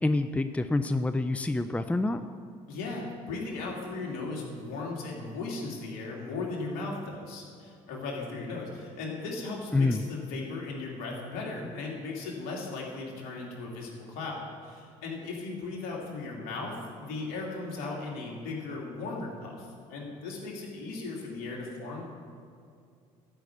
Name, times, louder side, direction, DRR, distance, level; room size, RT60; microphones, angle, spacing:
voice 1, 0.0-2.3 9.7-10.0, left 2 dB, 10° left, 10 dB, 0.5 m, -27 dB
voice 2, 2.7-22.0, left 3 dB, 65° left, -2 dB, 2.9 m, -37 dB
12.5 x 6.0 x 8.6 m, 2.3 s
hypercardioid pair, 60°, 17 cm